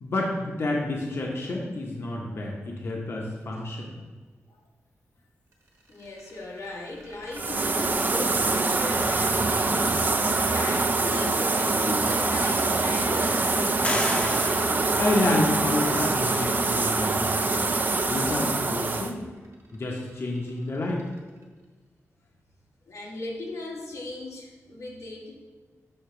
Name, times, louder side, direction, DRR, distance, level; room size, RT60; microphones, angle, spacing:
voice 1, 0.0-4.0 15.0-17.4 18.1-19.2 19.7-21.0, left 2 dB, 50° left, -2 dB, 0.9 m, -29 dB
sound 1, 5.5-21.6, right 2 dB, 65° right, 1.2 m, -47 dB
voice 2, 5.9-13.9 22.9-25.4, left 2 dB, 85° left, -2 dB, 1.2 m, -37 dB
sound 2, 7.3-19.1, right 3 dB, 35° right, 0.4 m, -24 dB
sound 3, 13.8-15.8, left 1 dB, 20° left, 0.7 m, -34 dB
6.4 x 2.9 x 5.6 m, 1.4 s
wide cardioid pair, 105°, 5 cm